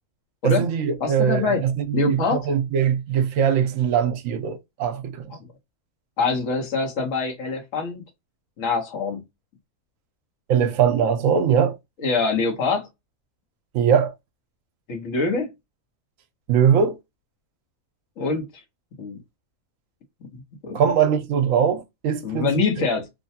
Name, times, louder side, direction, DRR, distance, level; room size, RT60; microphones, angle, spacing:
voice 1, 0.4-5.4 10.5-11.8 13.7-14.1 16.5-17.0 20.7-22.8, right 8 dB, 70° right, 0.9 m, -21 dB
voice 2, 1.0-1.6 1.9-2.4 6.2-8.0 8.6-9.2 12.0-12.9 14.9-15.5 18.2-18.5 19.0-19.2 20.3-20.8 22.2-23.1, left 4 dB, 60° left, 1.3 m, -24 dB
3.1 x 2.2 x 2.7 m
omnidirectional pair, 1.5 m